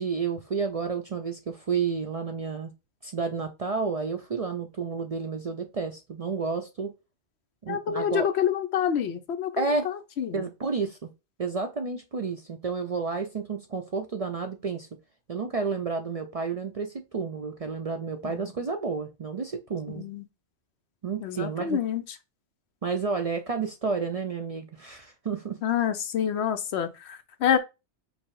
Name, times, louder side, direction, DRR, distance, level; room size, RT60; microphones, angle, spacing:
voice 1, 0.0-2.7 3.0-6.9 7.6-8.3 9.6-9.9 10.3-11.1 11.4-14.9 15.3-20.0 21.0-21.8 22.8-25.6, right 5 dB, 45° right, 0.5 m, -31 dB
voice 2, 7.7-10.4 18.2-18.5 20.0-20.2 21.2-22.0 25.6-27.6, left 9 dB, 70° left, 0.9 m, -27 dB
5.3 x 2.0 x 4.6 m
omnidirectional pair, 1.2 m